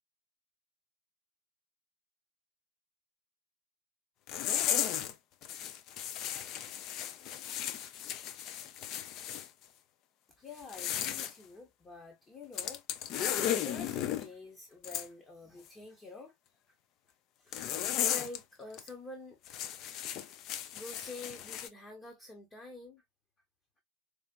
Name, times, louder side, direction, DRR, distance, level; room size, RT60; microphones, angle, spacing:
sound 1, 4.3-5.1 5.4-9.5 10.6-11.3 12.5-14.3 14.8-15.1 17.5-18.4 18.7-18.9 19.5-21.7, left 10 dB, 35° left, 0.5 m, -35 dB
voice 1, 10.4-12.8 13.1-16.3 17.4-19.4 20.7-23.0, left 3 dB, 15° left, 0.9 m, -48 dB
4.8 x 2.5 x 2.3 m
figure-of-eight pair, 90°, 0 cm